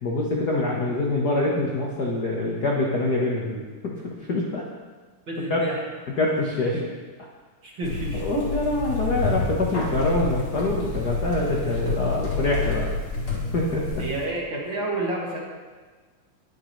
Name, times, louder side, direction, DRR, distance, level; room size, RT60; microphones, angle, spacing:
voice 1, 0.0-4.6 5.5-5.6 6.2-6.8 8.1-12.9 13.5-13.8, left 2 dB, 60° left, -3 dB, 1.0 m, -25 dB
voice 2, 5.3-5.8 6.7-6.8 7.6-8.2 14.0-15.4, right 2 dB, 40° right, -5 dB, 2.7 m, -29 dB
sound 1, 7.8-14.3, left 3 dB, 45° left, 3.5 m, -28 dB
21.0 x 7.8 x 3.3 m, 1.4 s
omnidirectional pair, 3.8 m